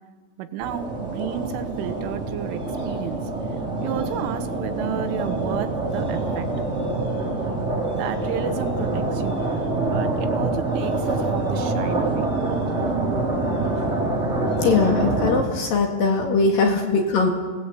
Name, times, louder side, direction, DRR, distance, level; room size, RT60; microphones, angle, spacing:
voice 1, 0.4-3.2 3.8-6.5 7.9-9.6 9.8-12.3, right 9 dB, 85° right, 9 dB, 3.7 m, -32 dB
sound 1, 0.6-15.4, right 2 dB, 20° right, 2.3 m, -25 dB
voice 2, 14.6-17.3, left 4 dB, 55° left, 3 dB, 3.0 m, -20 dB
26.0 x 18.5 x 8.2 m, 1.5 s
omnidirectional pair, 5.5 m